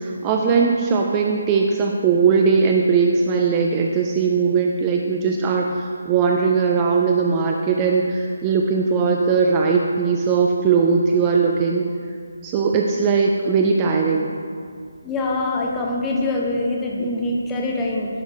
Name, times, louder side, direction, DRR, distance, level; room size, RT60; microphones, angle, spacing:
voice 1, 0.0-11.9 12.4-14.3, right 5 dB, 20° right, 0 dB, 0.3 m, -19 dB
voice 2, 15.0-18.1, left 2 dB, 10° left, -1 dB, 0.7 m, -24 dB
10.0 x 3.8 x 3.5 m, 2.2 s
figure-of-eight pair, 155°, 0 cm